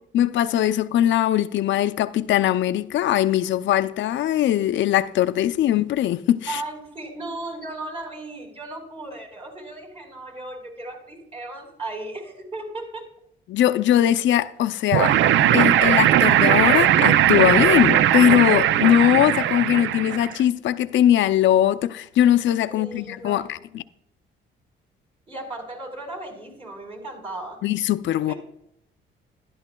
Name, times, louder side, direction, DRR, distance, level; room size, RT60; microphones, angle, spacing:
voice 1, 0.1-6.6 13.5-15.2 15.5-23.8 27.6-28.3, left 11 dB, 70° left, 0.5 m, -20 dB
voice 2, 6.5-13.1 22.7-23.5 25.3-27.6 28.3-28.4, right 2 dB, 30° right, 4.1 m, -36 dB
sound 1, 14.9-20.4, right 11 dB, 75° right, 0.4 m, -18 dB
12.5 x 11.0 x 2.2 m
cardioid pair, 90°, 20 cm